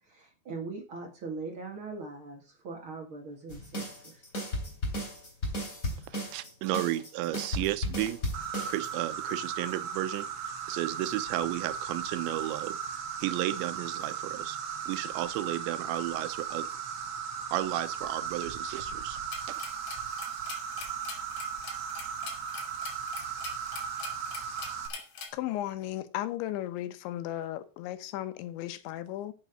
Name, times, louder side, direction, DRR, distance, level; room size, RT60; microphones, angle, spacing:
voice 1, 0.0-4.2, right 4 dB, 45° right, 1.9 m, -41 dB
sound 1, 3.5-8.9, equal, 20° left, 3.1 m, -34 dB
voice 2, 6.1-8.2 8.7-12.8 13.2-17.0 17.5-19.2 19.5-19.6, right 15 dB, 90° right, 3.1 m, -33 dB
Insect, 8.3-24.9, right 7 dB, 65° right, 1.7 m, -37 dB
sound 2, 19.3-25.3, left 5 dB, 75° left, 5.0 m, -44 dB
voice 3, 25.3-29.3, left 13 dB, 90° left, 3.3 m, -35 dB
8.3 x 7.9 x 6.4 m
omnidirectional pair, 5.1 m